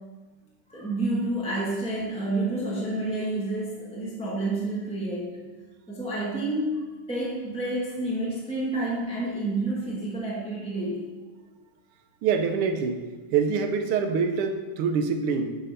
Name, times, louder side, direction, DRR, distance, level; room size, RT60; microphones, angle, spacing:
voice 1, 0.7-5.5 5.9-11.1, right 2 dB, 5° left, -6 dB, 0.6 m, -29 dB
voice 2, 12.2-15.5, right 5 dB, 85° right, 6 dB, 1.6 m, -25 dB
8.8 x 3.8 x 5.3 m, 1.3 s
omnidirectional pair, 2.4 m